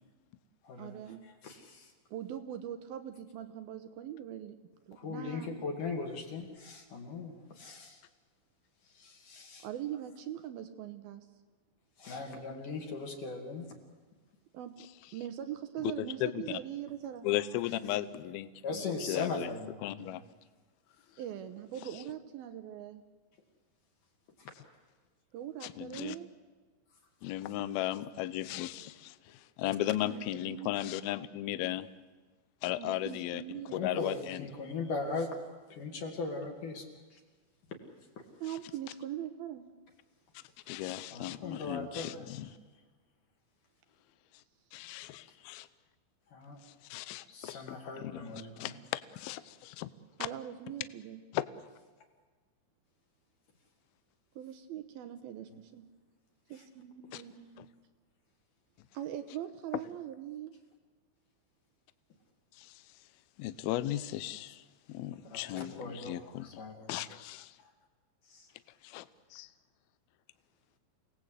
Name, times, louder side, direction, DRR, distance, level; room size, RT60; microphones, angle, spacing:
voice 1, 0.8-1.2 2.1-4.6 4.9-5.5 9.6-11.3 14.5-14.9 15.1-17.3 21.2-23.0 25.3-26.3 30.0-30.7 32.8-33.9 38.4-39.7 50.2-51.2 54.4-55.9 56.5-57.6 58.9-60.5, right 11 dB, 75° right, 9 dB, 2.3 m, -41 dB
voice 2, 1.4-1.9 4.9-8.0 9.0-9.7 12.0-13.7 18.6-20.2 33.7-35.3 35.7-36.8 41.1-42.2 46.3-46.6 47.3-48.8 65.2-67.0 68.3-68.5, left 4 dB, 50° left, 2 dB, 3.3 m, -39 dB
voice 3, 16.0-16.6 17.2-18.5 18.7-18.8 19.1-19.5 19.8-20.2 25.6-26.2 27.2-31.9 32.6-33.4 33.8-34.5 40.7-42.5 44.7-45.7 46.9-48.2 48.6-49.9 51.3-51.4 57.1-57.2 57.6-57.7 62.6-62.8 63.4-64.6 64.9-66.5 66.9-67.5 68.8-69.1 69.3-69.5, left 14 dB, 80° left, 14 dB, 2.2 m, -36 dB
29.0 x 19.0 x 8.2 m, 1.3 s
omnidirectional pair, 5.4 m